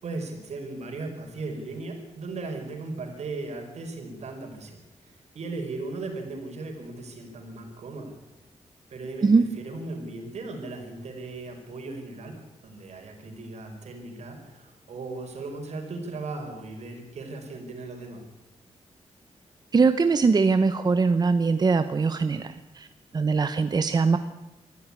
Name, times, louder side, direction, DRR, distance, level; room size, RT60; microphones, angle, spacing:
voice 1, 0.0-8.1 8.9-9.3 9.6-12.4 12.6-18.3, right 3 dB, 75° right, 4 dB, 5.0 m, -37 dB
voice 2, 19.7-22.9 23.1-24.2, right 4 dB, 35° right, 10 dB, 0.9 m, -22 dB
22.0 x 14.0 x 9.8 m, 0.99 s
wide cardioid pair, 135°, 11 cm